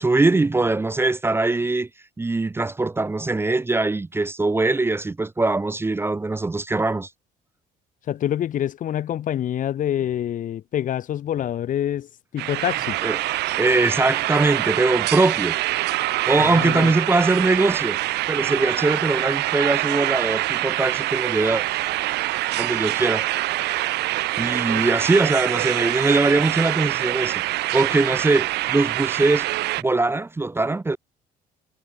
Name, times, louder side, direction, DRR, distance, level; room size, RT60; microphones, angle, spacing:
voice 1, 0.0-1.9 2.2-7.1 13.0-13.2 13.6-15.6 16.3-18.0 18.3-21.6 22.6-23.2 24.4-29.5 29.8-31.0, right 2 dB, 15° right, 0.7 m, -21 dB
voice 2, 8.1-12.1 12.3-13.0 16.4-16.9, left 10 dB, 50° left, 1.0 m, -26 dB
sound 1, 12.4-29.8, right 18 dB, 80° right, 1.0 m, -25 dB
cardioid pair, 110°, 17 cm